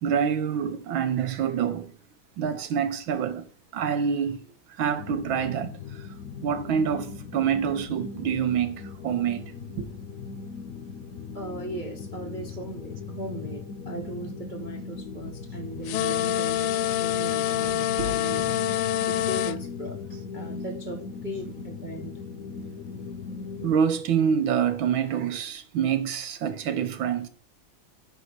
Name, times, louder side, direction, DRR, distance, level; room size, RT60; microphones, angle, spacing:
voice 1, 0.0-1.9 2.4-4.4 4.7-6.1 6.4-9.9 18.0-18.2 23.6-27.3, right 7 dB, 70° right, 1.7 m, -27 dB
sound 1, 5.0-23.8, left 5 dB, 60° left, 1.1 m, -39 dB
voice 2, 11.3-18.6 19.1-20.0 20.3-22.1, right 1 dB, 30° right, 1.0 m, -38 dB
sound 2, 15.9-19.6, left 11 dB, 80° left, 1.4 m, -26 dB
9.6 x 4.9 x 4.1 m
omnidirectional pair, 2.3 m